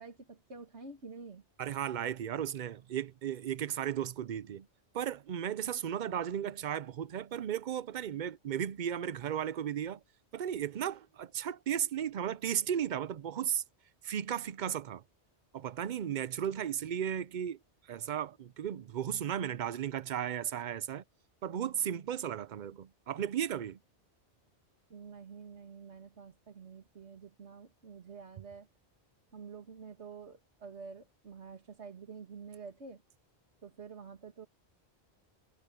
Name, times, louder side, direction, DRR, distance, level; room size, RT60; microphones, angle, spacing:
voice 1, 0.0-1.4 24.9-28.7 29.3-33.0 33.6-34.5, right 5 dB, 85° right, 2.4 m, -48 dB
voice 2, 1.6-4.7 4.9-10.0 10.3-13.6 14.0-15.0 15.5-17.6 17.9-21.0 21.4-23.8, right 9 dB, 55° right, 0.6 m, -35 dB
omnidirectional pair, 1.1 m